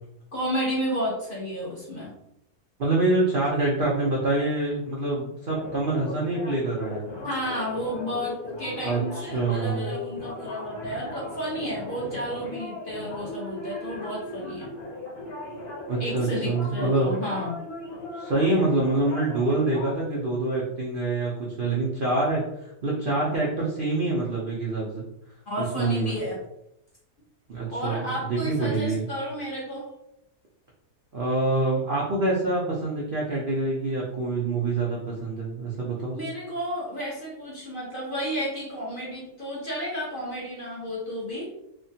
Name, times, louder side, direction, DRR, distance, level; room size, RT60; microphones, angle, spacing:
voice 1, 0.3-2.1 7.2-14.7 16.0-17.6 25.5-26.4 27.7-29.9 36.1-41.5, equal, 45° left, -5 dB, 0.8 m, -32 dB
voice 2, 2.8-7.0 8.8-10.0 15.9-17.1 18.1-25.0 25.6-26.1 27.5-29.1 31.1-36.2, right 2 dB, 75° right, -4 dB, 0.5 m, -26 dB
sound 1, 5.5-19.9, left 2 dB, 70° left, 1.4 m, -37 dB
3.2 x 2.1 x 2.6 m, 0.82 s
omnidirectional pair, 1.7 m